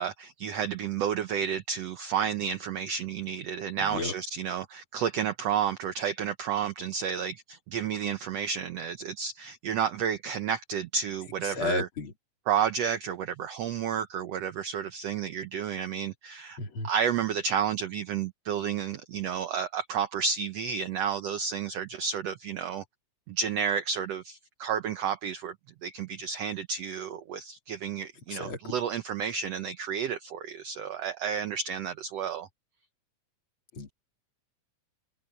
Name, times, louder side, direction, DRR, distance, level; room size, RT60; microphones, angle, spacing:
voice 1, 0.0-11.9 12.5-16.6 16.8-22.8 23.3-25.5 25.8-32.5, right 7 dB, 70° right, 1.6 m, -31 dB
voice 2, 3.8-4.1 11.4-12.1 16.6-16.9 28.3-28.7 33.7-33.9, left 3 dB, 40° left, 4.1 m, -33 dB
omnidirectional pair, 3.7 m